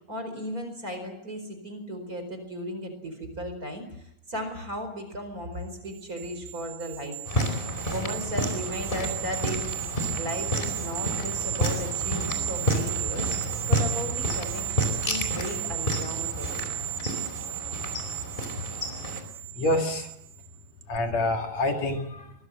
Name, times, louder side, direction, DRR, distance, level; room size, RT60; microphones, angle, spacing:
voice 1, 0.1-7.6 7.9-9.8 10.2-16.7, equal, 25° right, 7 dB, 4.8 m, -36 dB
sound 1, 5.8-20.5 20.8-21.0, right 13 dB, 60° right, 1.9 m, -34 dB
sound 2, 7.3-19.2, equal, 15° left, 4.5 m, -30 dB
voice 2, 19.5-20.1 20.9-22.3, left 1 dB, 55° left, 3 dB, 3.2 m, -27 dB
24.5 x 21.5 x 7.8 m, 0.78 s
omnidirectional pair, 3.8 m